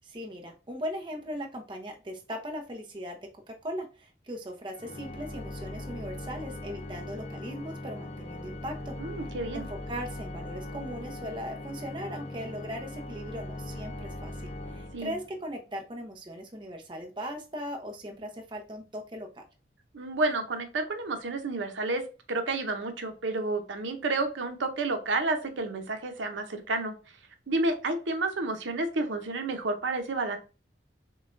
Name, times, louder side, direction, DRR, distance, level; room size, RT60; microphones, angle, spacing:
voice 1, 0.0-3.2 3.5-8.9 9.5-19.4, equal, 25° right, 2 dB, 0.7 m, -39 dB
Organ, 4.7-15.5, left 1 dB, 35° left, 0.5 m, -40 dB
voice 2, 9.0-9.7 14.9-15.2 19.9-22.0 22.3-26.9 27.5-30.4, right 2 dB, 90° right, 6 dB, 0.7 m, -30 dB
6.6 x 2.3 x 2.5 m, 0.33 s
head